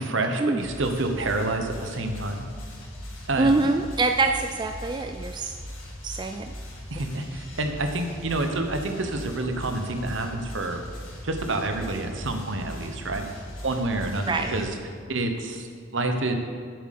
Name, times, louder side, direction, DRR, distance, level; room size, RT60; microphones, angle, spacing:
voice 1, 0.0-2.4 3.3-3.7 6.9-10.8 11.2-13.2 13.6-14.7 15.1-15.7 15.9-16.3, right 2 dB, 65° right, 5 dB, 1.1 m, -28 dB
sound 1, 0.6-14.6, equal, 75° left, 2.3 m, -40 dB
voice 2, 3.4-5.5 6.0-6.4 14.3-14.5, right 3 dB, 20° right, 6 dB, 0.3 m, -24 dB
7.9 x 7.5 x 6.7 m, 2.1 s
head